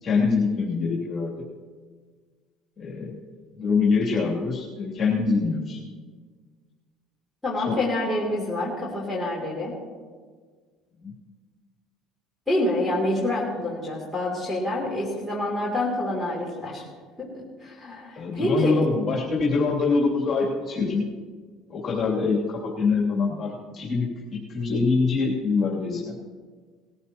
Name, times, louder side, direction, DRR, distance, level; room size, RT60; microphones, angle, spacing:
voice 1, 0.0-1.3 2.8-3.2 3.6-5.8 7.6-7.8 11.0-11.1 18.2-21.0 21.7-26.1, left 4 dB, 35° left, -5 dB, 2.9 m, -24 dB
voice 2, 7.4-9.7 12.5-16.8 17.2-17.3 17.6-18.8, left 1 dB, ahead, -3 dB, 3.0 m, -27 dB
20.0 x 14.0 x 3.0 m, 1.5 s
cardioid pair, 120°, 0 cm